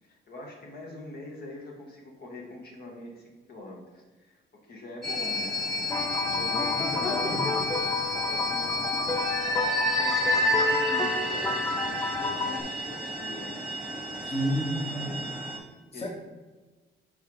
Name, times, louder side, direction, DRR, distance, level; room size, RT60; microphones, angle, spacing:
voice 1, 0.0-5.5 6.3-7.2 8.0-9.2 9.8-13.6 15.0-15.4 15.9-16.1, left 1 dB, 55° left, -2 dB, 1.2 m, -44 dB
sound 1, 5.0-15.6, left 1 dB, ahead, 1.2 m, -30 dB
sound 2, 5.9-12.6, left 3 dB, 15° left, 0.5 m, -31 dB
voice 2, 6.3-7.5 14.3-15.1 15.9-16.1, equal, 30° left, -1 dB, 1.3 m, -32 dB
5.5 x 3.7 x 4.7 m, 1.3 s
cardioid pair, 90°, 20 cm